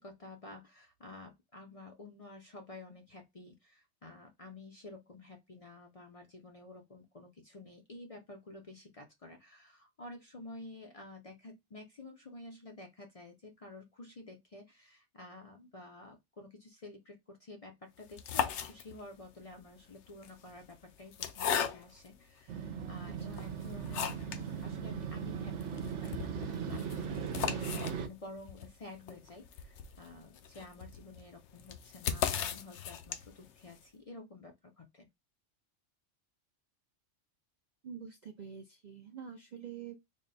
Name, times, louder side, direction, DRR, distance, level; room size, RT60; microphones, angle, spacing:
voice 1, 0.0-27.7 28.0-35.1, left 2 dB, 45° left, 0.5 m, -51 dB
sound 1, 18.0-19.2 20.1-22.1 22.8-22.9 23.3-24.5 24.8-24.9 25.2-25.3 25.6-33.5, left 8 dB, 75° left, 0.9 m, -37 dB
Motorcycle, 22.5-28.1, right 7 dB, 75° right, 1.0 m, -38 dB
voice 2, 37.8-40.0, right 7 dB, 60° right, 0.4 m, -46 dB
3.6 x 2.2 x 3.8 m
omnidirectional pair, 1.2 m